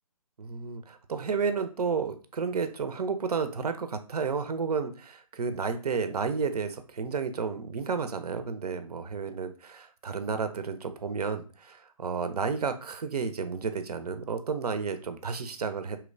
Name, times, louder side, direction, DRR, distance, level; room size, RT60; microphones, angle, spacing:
voice 1, 0.4-16.0, right 5 dB, 80° right, 9 dB, 0.4 m, -31 dB
2.8 x 2.1 x 2.5 m, 0.37 s
figure-of-eight pair, 145°, 20 cm